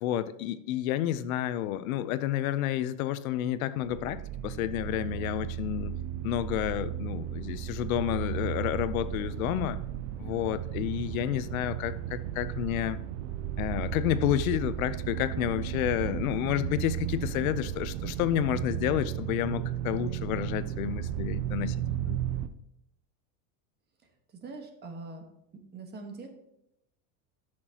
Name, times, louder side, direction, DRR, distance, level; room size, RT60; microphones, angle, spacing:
voice 1, 0.0-6.0 6.2-9.8 10.2-13.0 13.6-21.8 22.1-22.2, left 12 dB, 80° left, 14 dB, 0.7 m, -30 dB
sound 1, 3.8-22.5, right 11 dB, 65° right, 0.7 m, -34 dB
voice 2, 24.4-25.2 25.7-26.3, right 3 dB, 25° right, 4 dB, 1.4 m, -42 dB
13.5 x 6.1 x 2.9 m, 0.81 s
supercardioid pair, 145°, 41 cm